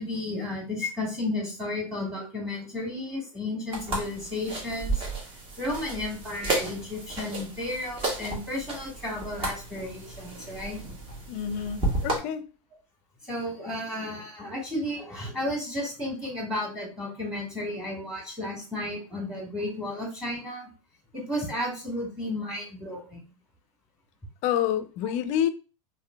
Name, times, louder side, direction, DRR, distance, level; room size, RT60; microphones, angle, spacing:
voice 1, 0.0-5.0 5.6-10.8 13.3-20.7 21.1-23.2, left 1 dB, 5° right, 1.6 m, -33 dB
sound 1, 3.7-12.2, right 2 dB, 30° right, 1.3 m, -33 dB
voice 2, 11.3-12.4 24.4-25.5, left 10 dB, 45° left, 0.5 m, -28 dB
3.7 x 3.1 x 2.2 m
hypercardioid pair, 120°, 17 cm